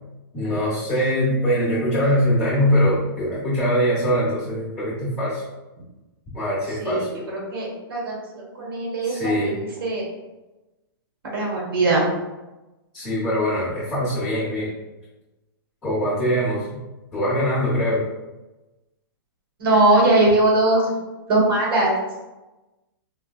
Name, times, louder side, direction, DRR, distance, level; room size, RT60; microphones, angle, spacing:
voice 1, 0.3-5.4 6.3-7.1 9.0-9.6 12.9-14.7 15.8-16.7 17.1-18.0, equal, 10° left, -10 dB, 0.9 m, -22 dB
voice 2, 6.8-10.1 11.3-12.1 19.6-20.9 21.3-22.0, right 2 dB, 70° right, -3 dB, 1.2 m, -20 dB
4.4 x 2.3 x 2.3 m, 1.1 s
hypercardioid pair, 175°, 12 cm